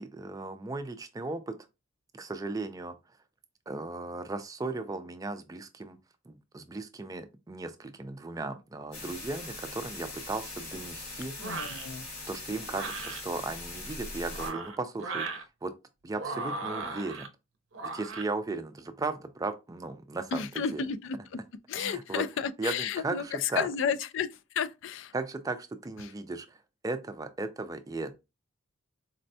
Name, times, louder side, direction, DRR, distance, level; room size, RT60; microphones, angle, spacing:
voice 1, 0.0-1.5 2.1-2.9 3.7-6.0 6.3-11.4 12.3-15.7 16.0-17.3 17.8-20.5 20.7-20.8 21.8-22.2 22.6-23.7 25.1-26.6 26.8-28.1, right 3 dB, 15° right, 0.3 m, -36 dB
sound 1, 8.9-14.5, left 2 dB, 90° left, 2.0 m, -41 dB
voice 2, 11.4-12.0 20.3-21.4 21.7-25.1 26.0-26.1, left 7 dB, 65° left, 0.3 m, -32 dB
sound 2, 11.4-11.9 12.7-13.2 14.2-15.4 16.1-17.3 17.7-18.3, right 3 dB, 65° right, 0.6 m, -37 dB
4.2 x 2.1 x 2.6 m
head